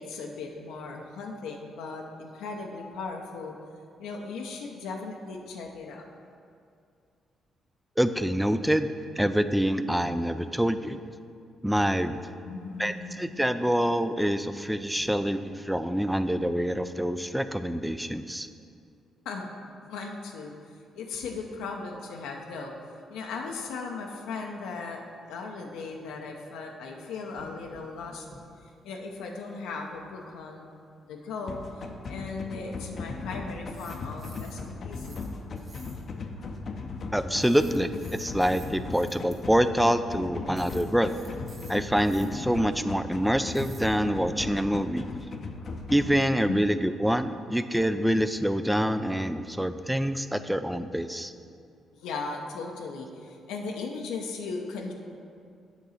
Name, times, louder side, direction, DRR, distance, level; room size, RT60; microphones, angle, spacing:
voice 1, 0.0-3.5 4.0-6.1 12.4-13.4 19.2-19.5 19.9-20.5 20.9-22.7 23.1-28.3 28.8-30.8 31.0-35.3 46.5-46.7 51.9-54.9, left 4 dB, 90° left, 1 dB, 0.7 m, -37 dB
voice 2, 8.0-11.0 11.6-12.2 12.8-18.5 37.1-41.2 41.7-45.1 45.9-51.3, equal, 5° right, 11 dB, 0.3 m, -26 dB
sound 1, 27.3-28.4 28.6-28.8 29.1-29.2 33.6-34.7 34.9-35.3 35.6-36.1 37.4-39.3 40.5-42.3 43.5-43.8, right 2 dB, 45° right, 1.5 m, -51 dB
sound 2, 31.5-46.2, left 3 dB, 50° left, 0.6 m, -38 dB
8.3 x 3.9 x 6.4 m, 2.4 s
cardioid pair, 90°, 0 cm